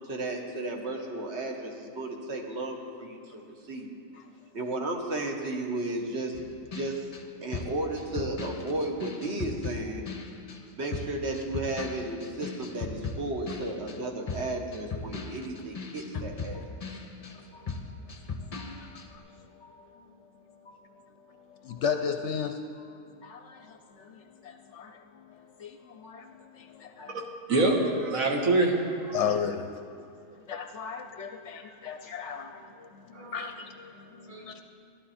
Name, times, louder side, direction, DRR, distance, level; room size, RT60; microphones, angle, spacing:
voice 1, 0.0-3.9 4.5-7.0 7.4-10.1 10.7-17.0, right 2 dB, 50° right, 2 dB, 1.4 m, -34 dB
sound 1, 6.3-10.6 10.9-17.4 17.7-19.1, left 4 dB, 35° left, 0.6 m, -38 dB
voice 2, 17.2-17.8 18.6-19.9 20.7-20.8 21.3-27.2 29.1-29.9 30.5-34.6, left 7 dB, 65° left, 7 dB, 0.8 m, -36 dB
voice 3, 27.5-29.2 33.1-33.3 34.3-34.5, right 2 dB, 70° right, 1 dB, 1.8 m, -25 dB
15.0 x 11.0 x 4.2 m, 2.5 s
omnidirectional pair, 1.5 m